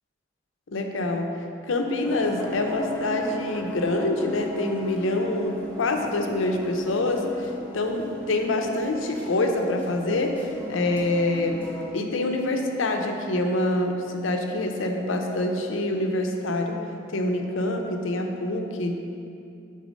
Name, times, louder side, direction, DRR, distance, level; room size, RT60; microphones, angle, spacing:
voice 1, 0.7-1.3 1.6-11.6 11.9-16.8 17.1-18.9, left 2 dB, 85° left, 3 dB, 0.6 m, -26 dB
sound 1, 2.0-11.9, equal, 10° left, 0.7 m, -38 dB
6.2 x 3.9 x 5.1 m, 2.6 s
head